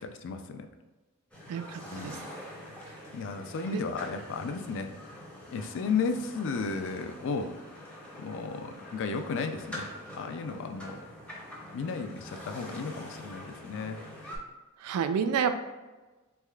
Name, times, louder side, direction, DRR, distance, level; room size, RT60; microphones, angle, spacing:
voice 1, 0.0-0.7 1.9-2.2 3.1-4.9 5.5-7.5 8.2-9.9 10.2-11.0 11.7-14.0, left 4 dB, 60° left, 7 dB, 0.3 m, -34 dB
sound 1, 1.3-14.4, left 1 dB, 5° left, 0.6 m, -45 dB
voice 2, 1.5-2.2 3.7-3.8 14.8-15.5, right 7 dB, 85° right, 10 dB, 0.3 m, -29 dB
3.4 x 3.1 x 2.3 m, 1.2 s
head